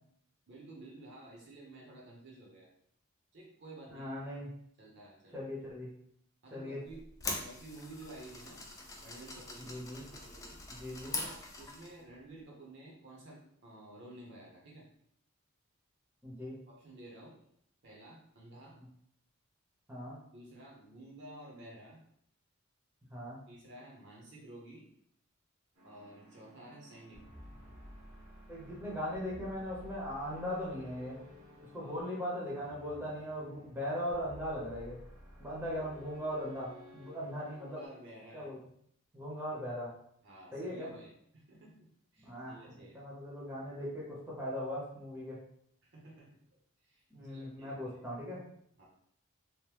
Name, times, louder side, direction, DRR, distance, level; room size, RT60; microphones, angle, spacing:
voice 1, 0.5-2.7 3.3-4.1 4.8-5.4 6.4-7.0 7.4-8.6 9.0-10.6 11.0-14.9 16.7-17.3 17.8-18.8 20.3-22.0 23.5-24.8 25.8-27.2 31.8-32.0 37.6-38.5 40.2-41.9 42.1-43.0 45.8-46.3 46.8-48.0 48.8-48.9, right 1 dB, 55° right, -2 dB, 0.8 m, -52 dB
voice 2, 3.9-4.5 5.3-5.9 6.5-6.8 9.7-10.0 10.8-11.1 16.2-16.6 19.9-20.2 23.1-23.4 28.5-31.2 31.7-35.0 35.4-37.8 38.3-38.6 39.1-39.9 40.5-40.9 42.2-45.4 47.1-48.4, equal, 10° right, -6 dB, 0.8 m, -39 dB
sound 1, 6.9-12.0, left 3 dB, 15° left, 0.3 m, -43 dB
sound 2, 25.7-37.9, left 1 dB, 80° right, 1.1 m, -54 dB
3.0 x 2.1 x 3.3 m, 0.68 s
head